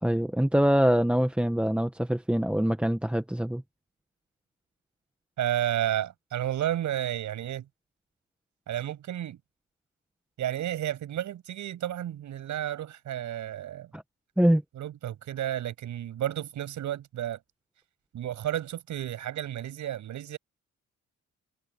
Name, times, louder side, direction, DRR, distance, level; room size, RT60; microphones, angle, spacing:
voice 1, 0.0-3.6 13.9-14.0 14.4-14.6, equal, 5° right, 1.3 m, -24 dB
voice 2, 5.4-7.7 8.7-9.4 10.4-13.9 14.7-17.4 18.1-20.4, right 11 dB, 75° right, 7.2 m, -32 dB
cardioid pair, 90°, 30 cm